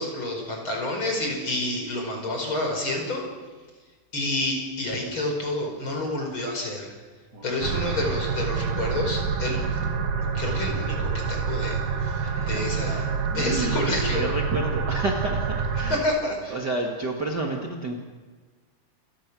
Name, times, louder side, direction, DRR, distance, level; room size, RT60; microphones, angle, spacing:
voice 1, 0.0-3.3 4.1-6.9 7.4-9.8 10.2-13.0 13.3-14.2 15.9-16.5, left 2 dB, 35° left, 2 dB, 5.8 m, -29 dB
voice 2, 7.3-8.1 12.0-16.0 16.5-17.9, right 2 dB, 35° right, 0 dB, 2.2 m, -31 dB
sound 1, 7.6-16.0, right 6 dB, 90° right, 3.6 m, -27 dB
29.0 x 23.0 x 6.3 m, 1.4 s
omnidirectional pair, 3.8 m